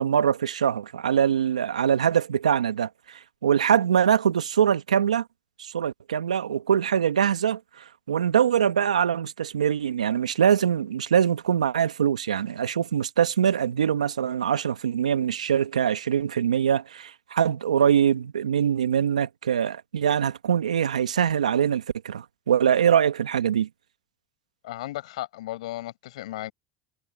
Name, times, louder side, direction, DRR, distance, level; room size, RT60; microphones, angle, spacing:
voice 1, 0.0-5.2 5.6-23.7, right 8 dB, 90° right, 1.4 m, -23 dB
voice 2, 24.6-26.5, left 16 dB, 75° left, 6.7 m, -35 dB
hypercardioid pair, 75°, 4 cm